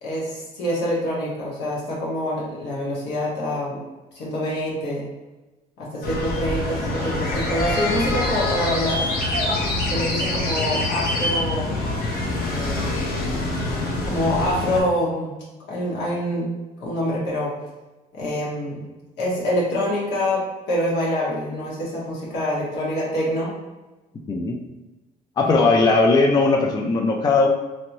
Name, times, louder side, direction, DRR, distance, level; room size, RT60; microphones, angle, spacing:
voice 1, 0.0-3.8 4.1-5.1 5.8-9.1 9.9-11.8 12.4-13.0 14.0-15.3 15.7-16.5 16.8-17.5 18.1-18.8 19.2-23.5 25.4-25.6, equal, 85° left, -6 dB, 1.3 m, -26 dB
sound 1, 6.0-14.8, left 2 dB, 65° left, 0.9 m, -25 dB
voice 2, 24.3-24.6 25.4-27.5, left 3 dB, 25° left, 2 dB, 0.3 m, -18 dB
3.0 x 2.9 x 2.6 m, 1.1 s
cardioid pair, 110°, 17 cm